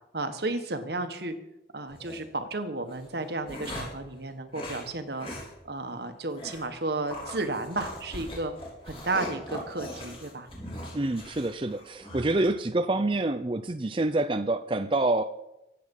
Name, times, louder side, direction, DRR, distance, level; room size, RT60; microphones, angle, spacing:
voice 1, 0.1-1.3 1.7-8.5 8.8-10.5, right 2 dB, 65° right, 8 dB, 1.6 m, -33 dB
sound 1, 1.9-2.2 2.9-4.0 4.5-4.9 5.2-5.5 5.8-5.9 6.4-6.7 7.1-12.4, left 1 dB, 30° left, 4.5 m, -40 dB
voice 2, 10.9-15.2, right 2 dB, 30° right, 8 dB, 0.5 m, -27 dB
23.5 x 8.5 x 5.5 m, 0.91 s
head